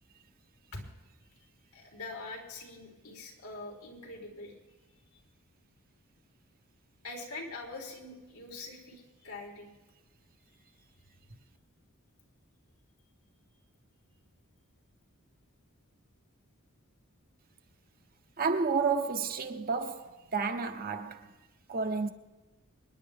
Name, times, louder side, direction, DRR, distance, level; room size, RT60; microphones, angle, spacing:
voice 1, 1.7-4.5 7.0-9.7, left 2 dB, 80° left, 3.6 m, -43 dB
voice 2, 18.4-21.3 21.7-22.1, right 5 dB, 45° right, 1.2 m, -31 dB
27.0 x 10.5 x 3.6 m
head